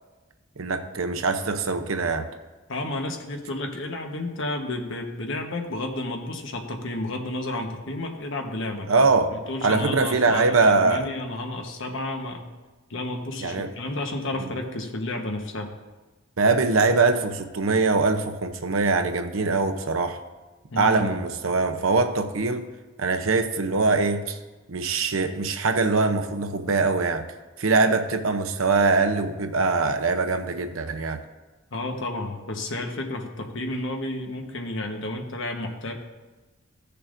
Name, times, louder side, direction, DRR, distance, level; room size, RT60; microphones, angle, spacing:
voice 1, 0.6-2.3 8.9-9.3 9.6-11.1 13.4-13.7 14.4-14.5 16.4-20.2 20.8-22.7 23.0-24.4 24.7-27.2 27.6-31.2, right 3 dB, 75° right, 7 dB, 0.7 m, -22 dB
voice 2, 2.7-9.1 9.3-12.5 12.9-15.7 20.7-21.0 31.7-35.9, left 2 dB, 65° left, 3 dB, 1.2 m, -31 dB
16.0 x 6.7 x 2.6 m, 1.2 s
head